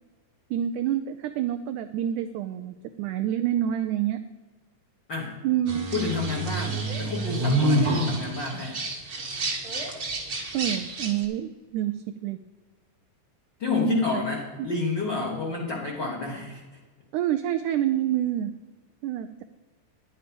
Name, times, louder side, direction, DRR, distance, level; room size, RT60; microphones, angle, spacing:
voice 1, 0.5-4.2 5.4-5.9 10.5-12.4 13.8-14.0 17.1-18.5 19.0-19.4, right 11 dB, 80° right, 8 dB, 1.9 m, -27 dB
sound 1, 5.7-11.2, right 2 dB, 40° right, 1.3 m, -28 dB
voice 2, 5.9-8.8 13.6-16.6, left 4 dB, 50° left, -2 dB, 1.5 m, -29 dB
10.5 x 9.6 x 5.1 m, 1.4 s
omnidirectional pair, 3.9 m